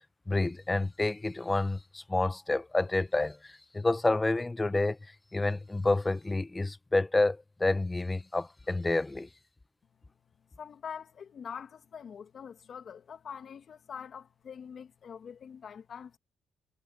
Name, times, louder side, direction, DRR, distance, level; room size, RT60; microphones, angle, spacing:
voice 1, 0.3-9.3, left 2 dB, 15° left, 1.0 m, -29 dB
voice 2, 10.6-16.2, left 7 dB, 55° left, 2.0 m, -44 dB
cardioid pair, 90°, 0 cm